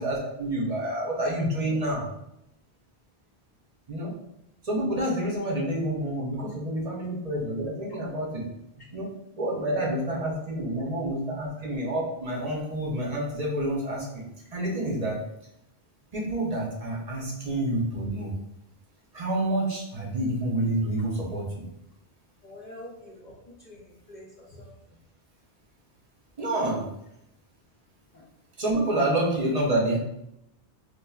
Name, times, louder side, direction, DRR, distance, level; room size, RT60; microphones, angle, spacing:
voice 1, 0.0-2.1 3.9-4.1 4.6-8.5 8.9-14.2 14.5-15.2 16.1-18.3 19.1-21.6 26.4-26.9 28.6-30.0, right 1 dB, 45° right, -2 dB, 0.7 m, -28 dB
voice 2, 22.4-23.3 23.6-24.7 28.1-28.3, left 1 dB, 50° left, -3 dB, 0.7 m, -46 dB
4.3 x 2.4 x 2.3 m, 0.82 s
omnidirectional pair, 1.1 m